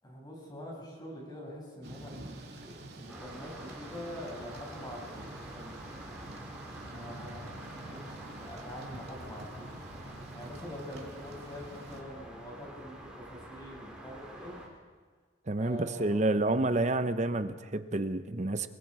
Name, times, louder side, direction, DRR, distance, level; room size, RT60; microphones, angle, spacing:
voice 1, 0.0-5.9 6.8-14.6 15.6-16.3, equal, 20° left, -1 dB, 6.3 m, -45 dB
Thunder / Rain, 1.8-12.0, right 1 dB, 60° right, 2.8 m, -47 dB
sound 1, 3.1-14.7, right 1 dB, 5° right, 4.4 m, -47 dB
voice 2, 15.5-18.7, right 2 dB, 40° right, 10 dB, 0.8 m, -29 dB
29.0 x 20.5 x 4.9 m, 1.4 s
head